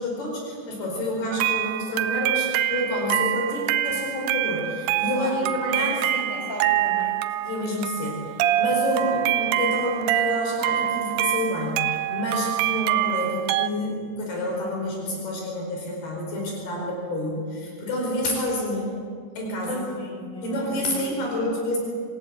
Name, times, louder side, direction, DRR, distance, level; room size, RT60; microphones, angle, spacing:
voice 1, 0.0-6.1 7.5-8.2 8.6-18.9 19.4-19.8 20.4-21.8, left 1 dB, 75° left, -1 dB, 6.6 m, -28 dB
sound 1, 1.3-13.7, right 13 dB, 85° right, 2.7 m, -25 dB
voice 2, 5.1-7.1 9.0-9.1 19.7-21.2, left 1 dB, 25° left, 0 dB, 6.4 m, -36 dB
27.0 x 16.5 x 8.2 m, 2.1 s
omnidirectional pair, 4.6 m